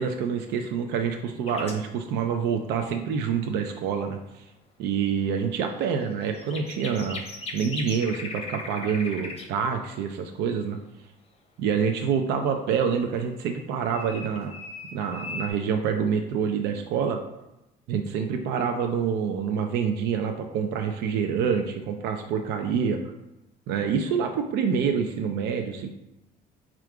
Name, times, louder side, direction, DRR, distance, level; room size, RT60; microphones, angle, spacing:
voice 1, 0.0-4.4 4.8-7.2 7.5-10.8 11.6-14.5 14.9-17.2 17.9-23.0 23.7-25.9, right 6 dB, 85° right, 5 dB, 0.5 m, -27 dB
sound 1, 1.5-1.9 5.9-9.5 13.4-15.5, left 3 dB, 35° left, 0.8 m, -38 dB
4.4 x 2.5 x 4.8 m, 0.93 s
cardioid pair, 110°, 17 cm